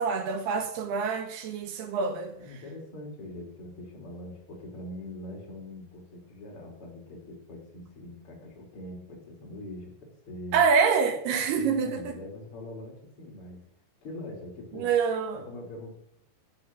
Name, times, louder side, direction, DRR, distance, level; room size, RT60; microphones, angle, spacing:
voice 1, 0.0-2.3 10.5-12.2 14.7-15.4, right 5 dB, 70° right, 3.2 m, -26 dB
voice 2, 2.4-10.6 11.5-13.7 14.0-14.9 15.3-16.0, left 1 dB, 30° left, 4.4 m, -43 dB
17.5 x 6.4 x 6.3 m
omnidirectional pair, 5.1 m